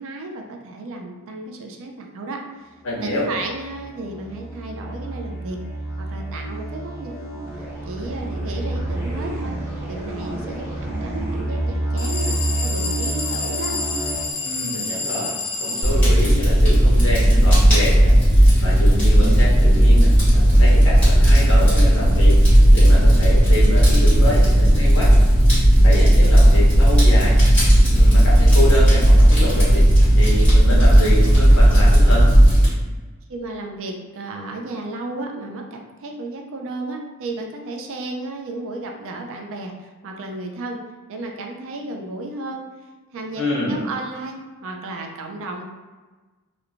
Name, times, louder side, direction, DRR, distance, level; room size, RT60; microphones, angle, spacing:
voice 1, 0.0-2.4 3.0-5.6 6.0-7.2 7.9-9.6 9.9-13.8 33.3-39.7 40.0-40.8 41.1-42.6 43.1-45.7, right 2 dB, 60° right, 2 dB, 0.4 m, -33 dB
voice 2, 2.8-3.3 14.4-25.1 25.8-27.4 27.9-29.9 30.1-32.3 43.4-43.8, left 1 dB, 60° left, -5 dB, 0.9 m, -26 dB
sound 1, 2.9-14.3, right 1 dB, 10° right, 0.5 m, -29 dB
sound 2, 12.0-16.0, left 3 dB, 45° left, 0.4 m, -28 dB
Fire, 15.8-32.7, equal, 5° left, 1.3 m, -13 dB
2.9 x 2.1 x 2.5 m, 1.3 s
head